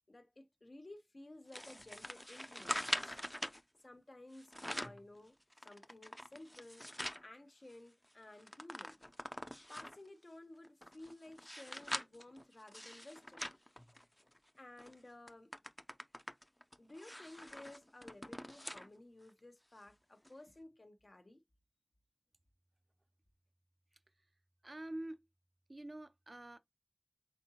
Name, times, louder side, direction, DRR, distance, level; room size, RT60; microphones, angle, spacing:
voice 1, 0.1-3.2 3.8-6.8 7.2-9.0 9.7-13.5 14.6-15.5 16.8-21.4, left 1 dB, 70° left, 0.9 m, -55 dB
sound 1, 1.5-3.6 4.3-5.0 5.5-7.2 7.7-7.8 8.0-10.1 10.6-14.4 14.8-15.0 15.3-18.9 19.3-19.4 20.2-20.3, equal, 15° left, 0.5 m, -44 dB
voice 2, 24.6-25.2 25.7-26.6, right 1 dB, 60° right, 0.5 m, -46 dB
4.3 x 3.6 x 2.8 m
wide cardioid pair, 45°, 0 cm